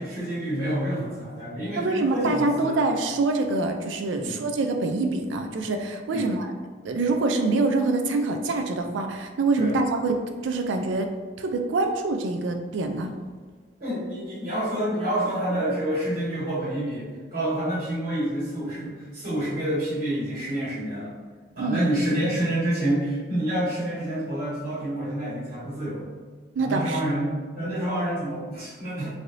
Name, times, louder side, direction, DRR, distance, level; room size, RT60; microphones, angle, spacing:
voice 1, 0.0-2.8 4.2-4.4 6.1-6.3 9.6-9.7 13.8-21.1 21.5-26.1 26.6-27.3 27.5-29.1, right 1 dB, 50° right, -11 dB, 1.4 m, -28 dB
voice 2, 1.8-6.5 6.8-11.1 11.4-13.1 21.6-21.9 26.6-27.0, right 3 dB, 85° right, 5 dB, 0.4 m, -25 dB
3.2 x 2.6 x 2.5 m, 1.5 s
head